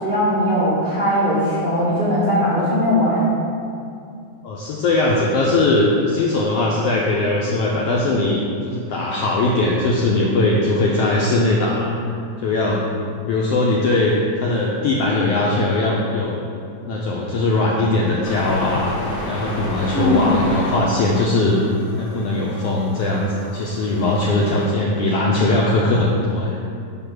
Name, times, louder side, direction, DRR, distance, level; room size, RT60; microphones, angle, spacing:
voice 1, 0.0-3.3 19.9-20.3, equal, 75° right, -10 dB, 0.4 m, -19 dB
voice 2, 4.4-11.9 12.4-12.9 13.2-16.4 16.9-18.9 19.3-21.6 22.0-26.6, left 2 dB, 85° left, -4 dB, 1.3 m, -20 dB
sound 1, 18.2-24.6, left 1 dB, 70° left, 1.0 m, -31 dB
5.6 x 3.9 x 6.1 m, 2.5 s
omnidirectional pair, 3.4 m